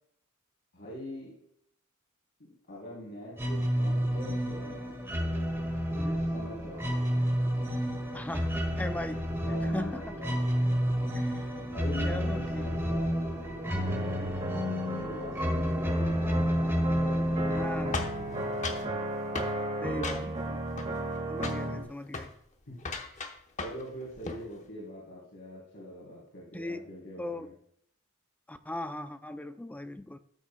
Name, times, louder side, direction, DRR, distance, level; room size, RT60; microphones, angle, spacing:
voice 1, 0.7-1.4 2.4-5.0 5.9-7.2 9.4-10.4 11.6-14.4 14.9-16.4 17.0-18.6 19.8-20.3 22.7-22.8 23.6-27.5, equal, 60° left, -6 dB, 3.3 m, -43 dB
sound 1, 3.4-18.9, equal, 10° right, 1.8 m, -30 dB
voice 2, 8.1-9.2 9.6-10.2 11.1-11.5 12.0-12.6 17.4-18.1 19.8-20.6 21.3-22.3 26.5-26.9 27.2-27.5 28.5-30.2, left 1 dB, 5° left, 9 dB, 0.4 m, -39 dB
sound 2, 13.9-21.8, right 1 dB, 30° right, 1.7 m, -34 dB
sound 3, 17.9-18.9 19.3-19.6 20.0-20.5 20.8-21.2 21.4-21.7 22.1-22.3 22.8-23.9 24.1-24.5, left 3 dB, 35° left, 0.9 m, -36 dB
13.0 x 7.1 x 2.2 m, 0.68 s
head